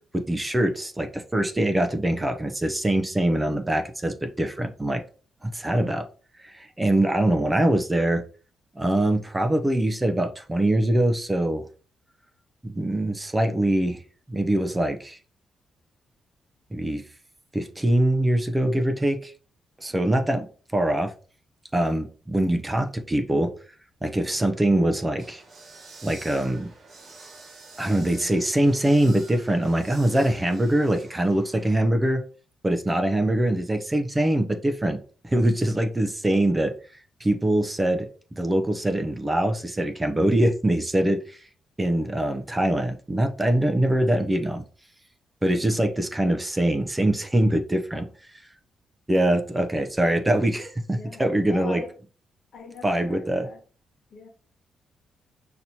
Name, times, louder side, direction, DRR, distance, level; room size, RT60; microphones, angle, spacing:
voice 1, 0.1-5.0 5.4-6.1 6.4-8.2 8.8-11.7 12.6-14.0 14.3-15.2 16.7-17.0 17.5-19.3 19.8-20.5 20.7-21.1 21.7-23.5 24.0-25.4 26.0-26.7 27.8-32.2 32.6-35.0 35.2-36.7 37.2-38.1 38.4-41.4 41.8-44.6 45.4-48.1 49.1-51.8 52.8-53.5, right 1 dB, 15° right, 0.5 m, -23 dB
sound 1, 25.2-31.7, right 3 dB, 50° right, 1.9 m, -48 dB
voice 2, 50.9-52.0 52.5-53.6 54.1-54.3, left 4 dB, 65° left, 1.2 m, -41 dB
5.8 x 2.8 x 2.7 m
cardioid pair, 110°, 0 cm